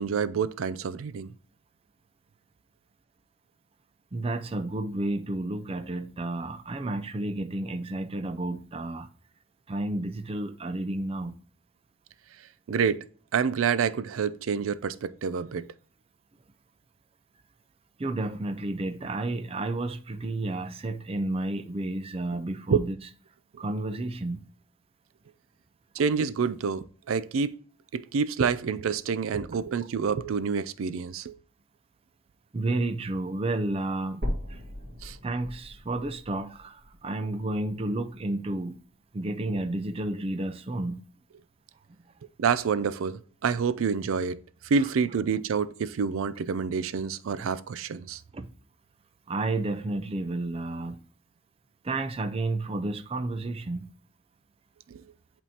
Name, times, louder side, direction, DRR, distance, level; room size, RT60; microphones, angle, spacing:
voice 1, 0.0-1.3 12.7-13.1 13.3-15.7 22.7-22.8 26.0-27.6 27.9-31.4 35.0-35.2 42.4-48.2 54.9-55.0, right 6 dB, 85° right, 0.4 m, -28 dB
voice 2, 4.1-9.1 9.7-11.4 18.0-23.0 23.6-24.5 32.5-34.2 34.5-34.6 35.2-38.8 39.1-41.1 48.3-48.5 49.3-51.0 51.8-53.9, right 2 dB, 30° right, 0.4 m, -31 dB
sound 1, 34.2-38.2 38.8-38.9 39.4-39.5 39.9-40.0 40.8-40.9, equal, 55° right, 2.1 m, -38 dB
11.0 x 3.6 x 2.8 m
head